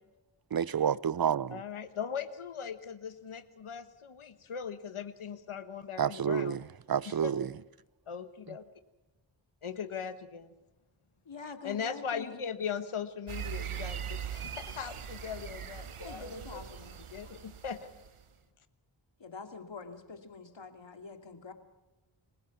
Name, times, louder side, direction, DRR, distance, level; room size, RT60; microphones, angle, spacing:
voice 1, 0.5-1.6 6.0-7.5, right 8 dB, 45° right, 0.6 m, -29 dB
voice 2, 1.5-6.6 7.1-7.3 8.1-8.6 9.6-10.5 11.5-16.6 17.1-17.8, left 7 dB, 80° left, 1.3 m, -39 dB
voice 3, 11.3-12.4 16.0-17.0 19.2-21.5, left 4 dB, 65° left, 2.6 m, -45 dB
sound 1, 13.3-18.2, right 9 dB, 90° right, 1.2 m, -41 dB
29.0 x 16.0 x 6.0 m
wide cardioid pair, 55°, 49 cm